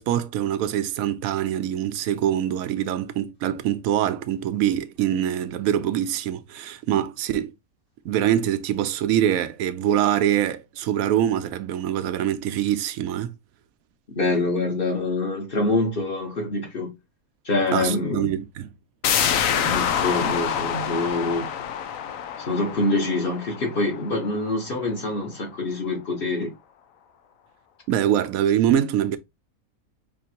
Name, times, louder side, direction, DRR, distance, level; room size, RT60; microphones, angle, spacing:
voice 1, 0.0-7.5 8.0-13.3 17.7-18.7 27.9-29.2, right 10 dB, 80° right, 1.0 m, -24 dB
voice 2, 14.1-16.9 17.4-18.3 19.5-21.5 22.4-26.5, left 2 dB, 40° left, 1.3 m, -25 dB
sound 1, 19.0-24.5 24.9-25.0, left 8 dB, 75° left, 1.0 m, -26 dB
5.1 x 3.1 x 2.8 m
omnidirectional pair, 1.5 m